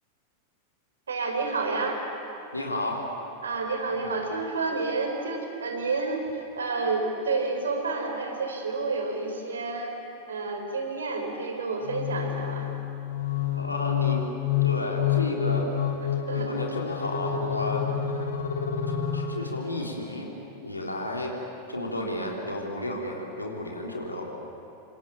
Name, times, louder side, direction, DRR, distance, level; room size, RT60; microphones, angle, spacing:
voice 1, 1.1-2.0 3.4-10.0 10.3-12.6 16.3-16.5, right 3 dB, 70° right, 3 dB, 4.8 m, -29 dB
voice 2, 2.5-3.1 4.0-4.2 13.6-14.2 14.6-15.7 16.3-17.9 19.1-20.3 20.6-21.4 21.7-24.3, left 1 dB, 85° left, -1 dB, 3.9 m, -32 dB
sound 1, 11.8-19.8, left 9 dB, 65° left, 3.2 m, -28 dB
28.0 x 25.5 x 7.4 m, 2.8 s
figure-of-eight pair, 90°, 0 cm